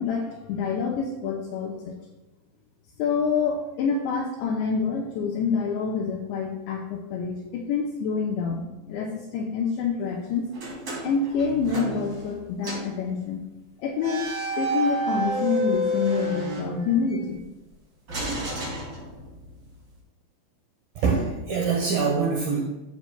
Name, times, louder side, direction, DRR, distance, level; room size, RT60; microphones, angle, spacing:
voice 1, 0.0-1.9 3.0-10.5 11.0-13.4 13.8-17.5, left 5 dB, 80° left, 0 dB, 2.7 m, -27 dB
sound 1, 10.5-12.4 12.6-13.0 14.0-17.2 18.1-19.5, right 1 dB, 40° right, 2.6 m, -30 dB
voice 2, 21.0-22.6, right 5 dB, 85° right, -1 dB, 2.1 m, -24 dB
13.0 x 7.2 x 2.2 m, 1.1 s
omnidirectional pair, 5.6 m